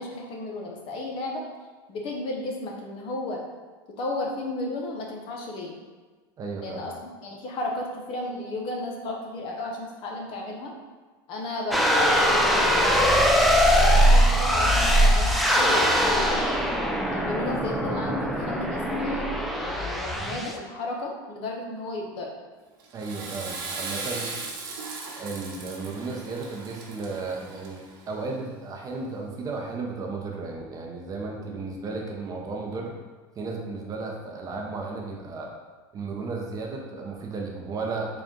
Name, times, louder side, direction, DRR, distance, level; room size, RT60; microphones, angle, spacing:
voice 1, 0.0-1.4 1.9-3.4 4.0-5.8 6.6-6.9 7.2-10.7 11.3-13.4 13.7-16.4 17.1-22.3, left 2 dB, 50° left, -1 dB, 0.8 m, -33 dB
voice 2, 6.4-6.8 22.9-24.3 25.2-27.8 28.1-32.9 33.4-35.5 35.9-38.2, right 3 dB, 30° right, 0 dB, 0.7 m, -34 dB
sound 1, 11.7-20.6, equal, ahead, 0.4 m, -21 dB
Water / Toilet flush, 22.8-28.0, right 4 dB, 80° right, 0.8 m, -37 dB
3.9 x 2.4 x 3.6 m, 1.4 s
supercardioid pair, 115°, 11 cm